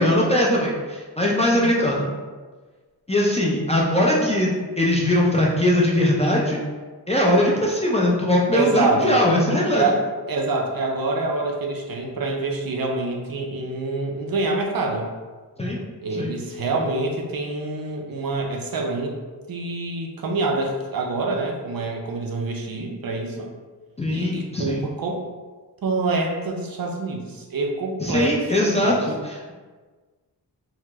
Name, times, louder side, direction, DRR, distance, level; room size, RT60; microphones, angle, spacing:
voice 1, 0.0-2.1 3.1-6.6 7.1-9.9 15.6-15.8 16.1-16.3 24.0-24.8 28.0-29.5, left 1 dB, 15° left, -4 dB, 0.3 m, -20 dB
voice 2, 8.5-9.2 9.7-10.0 10.3-15.1 16.0-19.1 19.5-23.5 24.1-25.2 25.8-29.0, right 3 dB, 55° right, 1 dB, 0.5 m, -26 dB
2.8 x 2.0 x 3.3 m, 1.4 s
wide cardioid pair, 110°, 42 cm